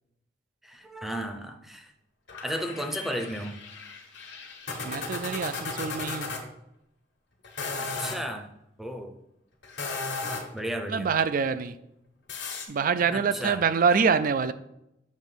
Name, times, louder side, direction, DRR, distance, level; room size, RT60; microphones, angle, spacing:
voice 1, 0.6-1.9 2.4-3.6 7.8-8.5 8.8-9.1 10.5-11.1 13.1-13.6, equal, ahead, 4 dB, 0.7 m, -34 dB
sound 1, 2.3-6.4 7.4-8.2 9.6-10.6 12.3-12.7, left 3 dB, 70° left, 1.3 m, -35 dB
voice 2, 4.8-6.3 10.9-11.8 12.7-14.5, right 6 dB, 50° right, 12 dB, 0.4 m, -25 dB
7.3 x 3.0 x 5.8 m, 0.83 s
head